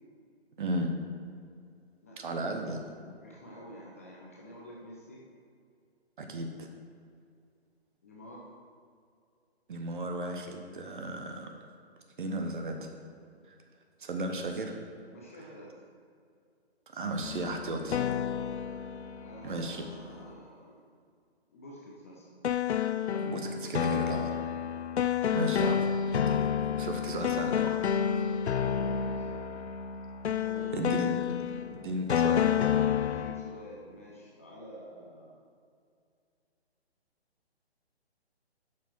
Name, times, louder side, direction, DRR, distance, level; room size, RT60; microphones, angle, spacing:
voice 1, 0.6-0.9 2.2-3.1 6.2-6.7 9.7-11.5 12.2-12.9 13.5-13.6 14.0-14.8 16.9-18.0 19.4-19.8 23.1-24.3 25.3-26.5 26.8-27.9 30.7-31.2 31.8-32.5, right 1 dB, 50° right, 4 dB, 1.1 m, -35 dB
voice 2, 2.0-2.6 3.2-5.2 8.0-8.5 15.1-15.8 19.2-20.8 21.5-22.3 28.7-29.6 30.4-31.0 32.9-35.4, equal, 15° left, -4 dB, 0.5 m, -49 dB
sound 1, 17.2-20.2 22.4-33.5, left 8 dB, 85° left, 0.5 m, -30 dB
8.4 x 6.2 x 4.5 m, 2.3 s
figure-of-eight pair, 140°, 33 cm